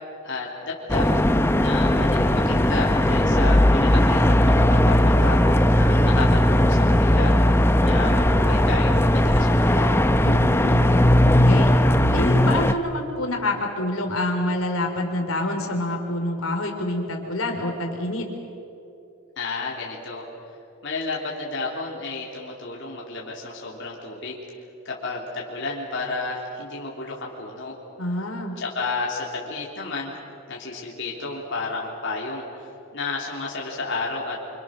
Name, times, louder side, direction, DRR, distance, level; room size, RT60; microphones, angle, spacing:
voice 1, 0.2-1.1 1.6-7.3 7.8-9.9 19.4-20.3 20.8-24.4 24.8-27.8 28.6-30.1 30.5-34.6, left 3 dB, 55° left, -3 dB, 3.3 m, -32 dB
sound 1, 0.9-12.7, left 1 dB, 10° left, 0.7 m, -18 dB
voice 2, 10.2-10.9 11.2-11.7 12.1-18.3 28.0-28.6, left 1 dB, 70° left, 2 dB, 3.5 m, -27 dB
27.5 x 26.0 x 6.5 m, 2.8 s
head